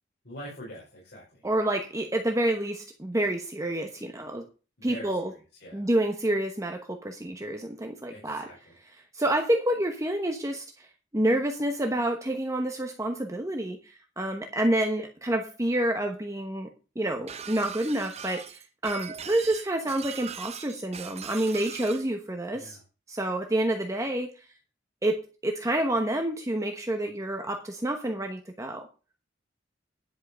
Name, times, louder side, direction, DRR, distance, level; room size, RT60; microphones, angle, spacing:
voice 1, 0.2-1.4 4.8-5.9 8.1-8.8 22.5-22.8, equal, 60° left, -5 dB, 4.7 m, -45 dB
voice 2, 1.4-4.4 4.8-5.3 5.7-8.5 9.1-10.9 11.1-16.7 16.9-22.8 23.1-24.4 25.0-28.9, right 1 dB, 15° right, 4 dB, 1.1 m, -28 dB
Shatter, 17.3-22.0, right 7 dB, 35° right, 0.7 m, -40 dB
10.5 x 5.6 x 6.7 m, 0.33 s
head